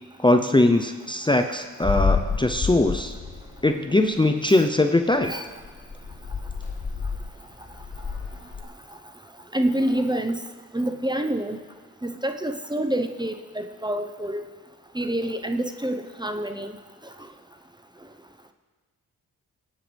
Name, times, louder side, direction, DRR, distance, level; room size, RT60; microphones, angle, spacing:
voice 1, 0.2-3.1 3.6-5.3, left 2 dB, 15° left, 6 dB, 0.8 m, -21 dB
sound 1, 1.8-3.7 4.1-4.2 4.7-4.8 5.1-5.3 5.6-8.6, left 5 dB, 40° left, 2.0 m, -29 dB
voice 2, 9.5-10.4 10.7-11.6 12.0-14.4 14.9-16.8, right 1 dB, 10° right, 7 dB, 0.9 m, -27 dB
22.5 x 9.0 x 3.5 m, 1.4 s
supercardioid pair, 50°, 37 cm